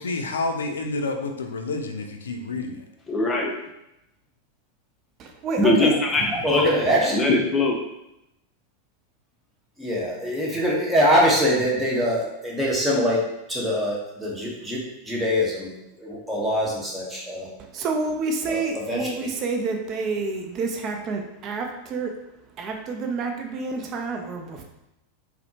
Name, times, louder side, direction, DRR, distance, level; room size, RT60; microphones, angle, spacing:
voice 1, 0.0-2.8, left 3 dB, 90° left, 5 dB, 0.4 m, -29 dB
voice 2, 3.1-3.5 5.6-6.7 7.1-7.8, left 2 dB, 20° left, 0 dB, 0.6 m, -21 dB
voice 3, 5.2-5.9 6.2-6.3 17.6-22.1 22.6-24.6, right 3 dB, 40° right, 3 dB, 0.5 m, -29 dB
voice 4, 6.4-7.2 9.8-13.2 13.5-15.7 16.0-17.5 18.5-19.3, equal, 10° right, -5 dB, 1.1 m, -23 dB
4.1 x 2.1 x 2.8 m, 0.88 s
hypercardioid pair, 105°, 0 cm